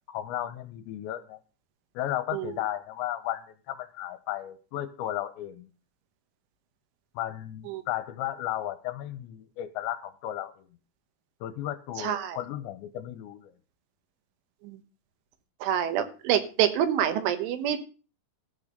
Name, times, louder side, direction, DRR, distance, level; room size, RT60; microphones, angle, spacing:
voice 1, 0.1-1.4 1.9-5.7 7.2-10.7 11.4-13.5, left 13 dB, 80° left, 12 dB, 3.0 m, -34 dB
voice 2, 12.0-12.4 14.6-14.8 15.6-17.8, right 10 dB, 90° right, 10 dB, 3.7 m, -27 dB
14.0 x 6.1 x 6.7 m, 0.36 s
omnidirectional pair, 5.4 m